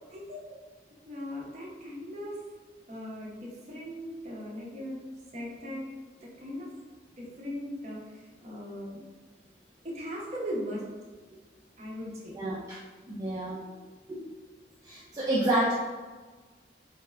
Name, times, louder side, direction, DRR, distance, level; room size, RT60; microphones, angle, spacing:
voice 1, 0.1-0.5 1.1-2.4 2.9-5.0 5.3-5.8 6.2-6.7 7.2-9.0 9.8-10.8 11.8-12.4, equal, 35° right, -4 dB, 0.8 m, -38 dB
voice 2, 12.3-13.6 14.1-14.2 14.8-15.7, right 1 dB, 20° right, -7 dB, 0.4 m, -29 dB
3.4 x 2.4 x 3.2 m, 1.4 s
head